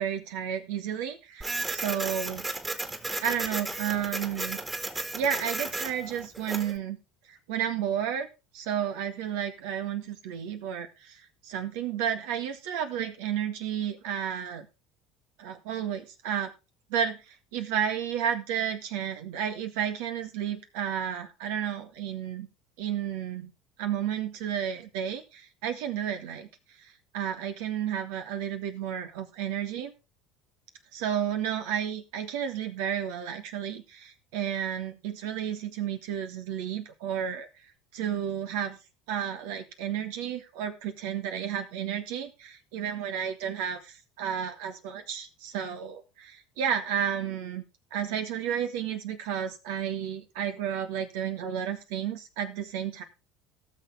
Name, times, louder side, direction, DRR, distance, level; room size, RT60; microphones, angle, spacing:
voice 1, 0.0-2.5 3.2-4.6 5.1-7.0 7.3-8.3 8.5-14.7 15.4-16.5 16.9-22.5 22.8-23.5 23.8-26.5 26.8-29.9 30.9-37.5 37.9-38.8 39.1-47.6 47.9-53.0, right 9 dB, 70° right, 7 dB, 1.8 m, -32 dB
Printer, 1.4-6.8, right 2 dB, 15° right, 2.2 m, -34 dB
18.0 x 6.6 x 3.6 m, 0.28 s
hypercardioid pair, 75°, 0 cm